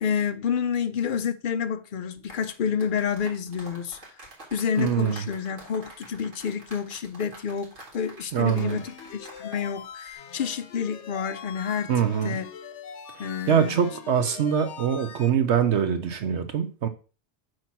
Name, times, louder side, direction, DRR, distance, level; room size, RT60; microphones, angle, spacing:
voice 1, 0.0-4.0 4.5-11.9 12.2-12.5 13.2-13.8, left 7 dB, 55° left, 0.7 m, -29 dB
sound 1, 2.2-9.7 9.9-10.1, right 1 dB, 90° right, 2.4 m, -48 dB
voice 2, 4.8-5.2 8.3-8.8 11.9-12.4 13.1-16.9, right 8 dB, 65° right, 1.0 m, -24 dB
sound 2, 8.4-15.3, left 8 dB, 70° left, 1.0 m, -43 dB
7.6 x 3.0 x 5.9 m
omnidirectional pair, 1.3 m